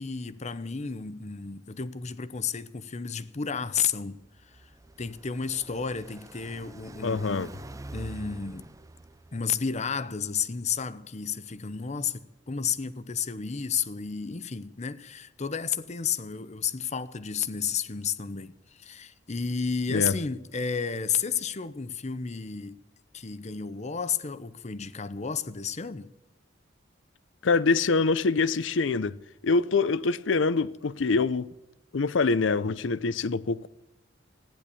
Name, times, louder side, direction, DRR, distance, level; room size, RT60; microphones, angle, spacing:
voice 1, 0.0-4.2 4.5-4.7 5.0-7.5 7.9-8.7 9.3-22.8 23.1-26.1, left 6 dB, 40° left, 0.8 m, -32 dB
Car passing by, 4.2-9.6, right 2 dB, 15° right, 0.5 m, -46 dB
voice 2, 7.0-7.5 19.9-20.1 27.4-29.2 29.4-31.5 31.9-33.7, left 4 dB, 85° left, 0.6 m, -25 dB
15.0 x 10.5 x 8.4 m
head